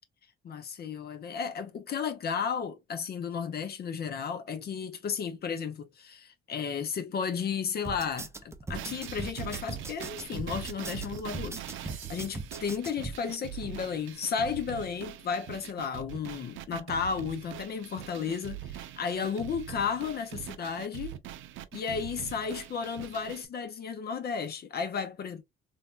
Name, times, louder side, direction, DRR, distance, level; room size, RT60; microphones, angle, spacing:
voice 1, 0.4-21.2 21.7-25.4, left 6 dB, 55° left, 0.6 m, -33 dB
sound 1, 7.8-13.2, right 3 dB, 15° right, 0.4 m, -39 dB
sound 2, 8.7-23.5, right 11 dB, 80° right, 0.5 m, -42 dB
3.3 x 2.1 x 2.4 m
cardioid pair, 90°, 20 cm